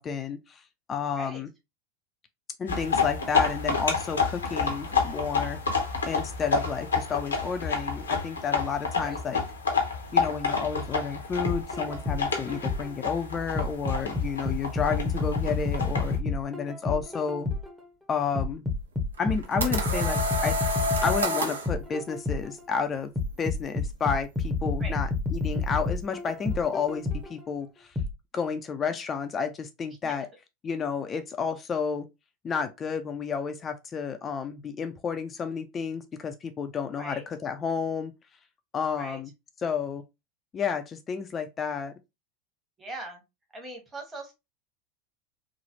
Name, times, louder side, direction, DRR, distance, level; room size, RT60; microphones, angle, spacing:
voice 1, 0.0-1.5 2.6-5.6 6.1-9.4 10.1-17.5 18.1-18.6 19.2-20.6 21.0-23.1 23.4-27.9 28.3-30.3 30.6-32.1 32.4-38.1 38.7-39.3 39.6-40.0 40.5-41.9, left 6 dB, 30° left, 0.3 m, -31 dB
voice 2, 1.1-1.4 9.0-9.2 24.8-25.0 30.0-30.2 37.0-37.2 38.9-39.2 42.8-43.2 43.5-44.3, right 1 dB, 20° right, 1.1 m, -40 dB
sound 1, 2.7-16.2, left 5 dB, 80° left, 0.7 m, -29 dB
sound 2, 11.5-13.0 13.6-17.8 18.4-22.6 23.2-27.4 28.0-28.1, left 3 dB, ahead, 0.7 m, -30 dB
sound 3, 19.2-21.7, equal, 80° right, 0.5 m, -28 dB
3.1 x 2.0 x 2.8 m
figure-of-eight pair, 85°, 0 cm